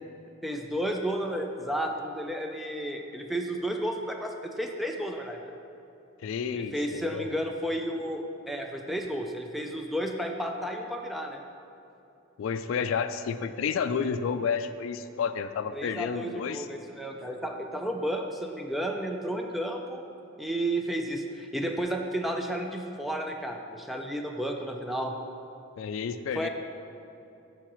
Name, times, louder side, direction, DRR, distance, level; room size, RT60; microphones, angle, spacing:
voice 1, 0.4-5.5 6.5-11.4 15.7-20.0 20.4-25.1 26.4-26.5, right 1 dB, ahead, 2 dB, 0.4 m, -32 dB
voice 2, 6.2-7.3 12.4-16.7 25.8-26.5, left 6 dB, 70° left, 10 dB, 0.3 m, -31 dB
11.5 x 4.9 x 3.1 m, 2.9 s
head